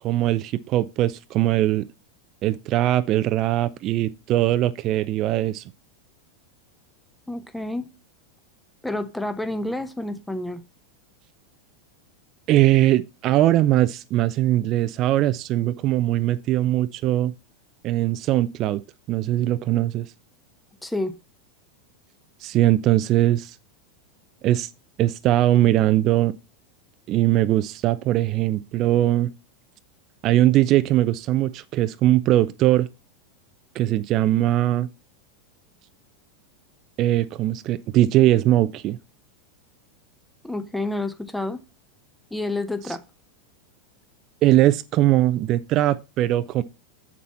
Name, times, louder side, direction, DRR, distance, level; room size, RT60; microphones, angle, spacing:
voice 1, 0.0-1.9 2.4-5.6 12.5-17.3 17.8-18.8 19.1-20.1 22.4-23.6 24.4-24.7 25.0-26.4 27.1-29.3 30.2-32.9 33.8-34.9 37.0-39.0 42.9-43.0 44.4-46.6, right 14 dB, 40° right, 0.4 m, -20 dB
voice 2, 7.3-7.9 8.8-10.6 20.8-21.2 40.4-41.6 42.3-43.0, left 2 dB, 5° left, 0.8 m, -29 dB
7.4 x 7.0 x 4.1 m
figure-of-eight pair, 90°, 0 cm